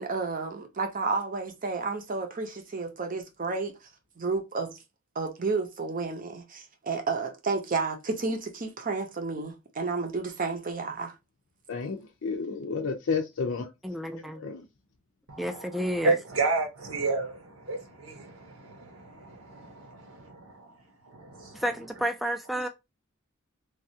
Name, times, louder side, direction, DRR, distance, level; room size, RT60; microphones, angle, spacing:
voice 1, 0.0-3.7 4.2-4.8 5.2-11.1, right 4 dB, 40° right, 0.6 m, -31 dB
voice 2, 11.7-13.7 14.4-14.6, left 5 dB, 75° left, 0.5 m, -31 dB
voice 3, 13.8-14.4 15.4-16.2 21.5-22.7, equal, ahead, 0.3 m, -31 dB
voice 4, 15.3-20.7 21.1-21.6, right 3 dB, 85° right, 1.0 m, -32 dB
3.1 x 2.3 x 2.7 m
head